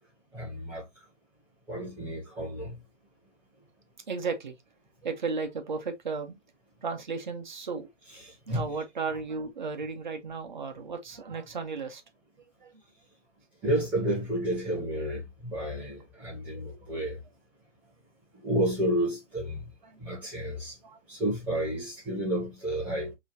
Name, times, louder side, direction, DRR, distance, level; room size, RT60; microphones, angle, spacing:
voice 1, 0.3-1.0 1.7-2.8 8.1-8.6 13.6-17.2 18.4-19.7 20.0-20.8 21.1-23.1, right 1 dB, 5° right, 1.0 m, -31 dB
voice 2, 4.1-4.5 5.0-6.4 6.8-7.9 8.5-12.0 12.6-12.7 16.6-16.7 19.8-20.0 20.4-21.0, right 4 dB, 40° right, 1.0 m, -35 dB
5.4 x 3.1 x 2.7 m
figure-of-eight pair, 155°, 36 cm